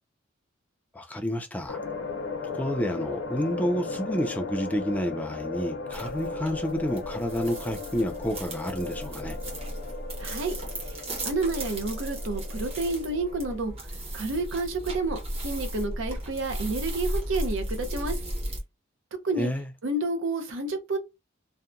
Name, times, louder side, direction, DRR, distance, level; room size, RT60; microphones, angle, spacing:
voice 1, 0.9-1.8 2.5-9.4 19.4-19.7, equal, 10° left, 0.3 m, -30 dB
sound 1, 1.7-13.6, left 3 dB, 65° left, 0.6 m, -36 dB
sound 2, 5.9-18.6, right 1 dB, 30° right, 0.9 m, -35 dB
voice 2, 10.2-10.6 10.8-13.9 14.1-18.2 19.2-19.5 19.8-21.0, right 2 dB, 70° right, 0.6 m, -30 dB
2.7 x 2.1 x 2.4 m
head